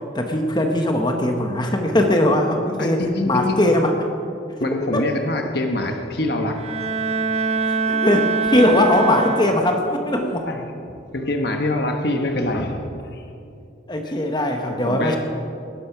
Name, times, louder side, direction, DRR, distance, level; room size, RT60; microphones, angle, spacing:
voice 1, 0.0-3.9 4.9-5.0 7.6-10.5 13.9-15.2, left 1 dB, 25° left, 3 dB, 1.1 m, -20 dB
voice 2, 2.8-3.6 4.6-6.6 10.4-10.6 11.1-13.2 14.7-15.2, left 1 dB, 60° left, 4 dB, 1.2 m, -24 dB
Bowed string instrument, 6.5-9.9, right 4 dB, 35° right, 0.7 m, -23 dB
19.0 x 10.5 x 5.9 m, 2.5 s
head